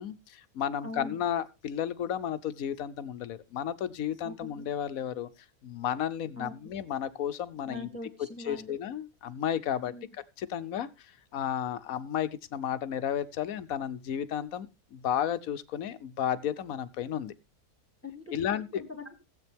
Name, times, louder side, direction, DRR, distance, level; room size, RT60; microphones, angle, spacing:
voice 1, 0.0-5.3 5.6-7.9 8.4-9.9 10.4-17.3 18.3-18.8, left 9 dB, 70° left, 1.2 m, -33 dB
voice 2, 0.8-1.2 4.2-4.6 6.4-6.5 7.7-8.8 9.9-10.0 18.0-19.2, left 2 dB, 10° left, 2.1 m, -42 dB
16.5 x 8.3 x 3.4 m
omnidirectional pair, 1.6 m